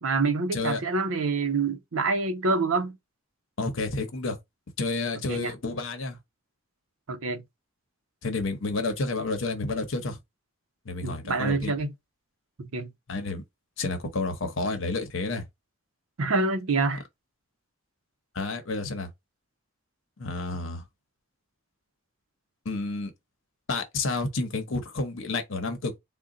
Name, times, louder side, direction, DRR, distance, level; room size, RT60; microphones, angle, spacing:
voice 1, 0.0-3.0 5.3-5.5 7.1-7.4 11.0-11.9 12.6-12.9 16.2-17.0, right 3 dB, 80° right, 0.7 m, -26 dB
voice 2, 3.6-4.4 4.8-6.2 8.2-10.2 10.8-11.7 13.1-13.4 13.8-15.4 18.3-19.1 20.2-20.8 22.6-23.1 23.7-25.9, left 3 dB, 65° left, 0.9 m, -30 dB
3.7 x 2.2 x 3.8 m
head